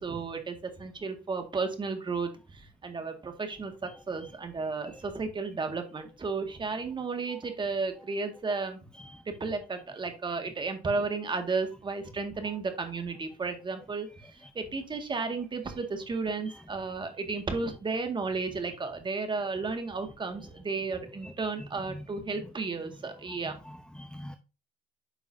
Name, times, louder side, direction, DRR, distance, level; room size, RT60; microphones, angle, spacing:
voice 1, 0.0-8.8 9.3-14.1 14.3-23.6, right 4 dB, 30° right, 6 dB, 1.8 m, -33 dB
voice 2, 3.9-4.4 4.8-5.0 7.3-7.4 8.9-9.2 14.2-14.5 16.5-16.6 21.2-21.3 21.6-22.1 23.4-24.4, left 1 dB, 5° left, 8 dB, 0.6 m, -46 dB
9.3 x 5.4 x 2.7 m, 0.32 s
cardioid pair, 110°, 17 cm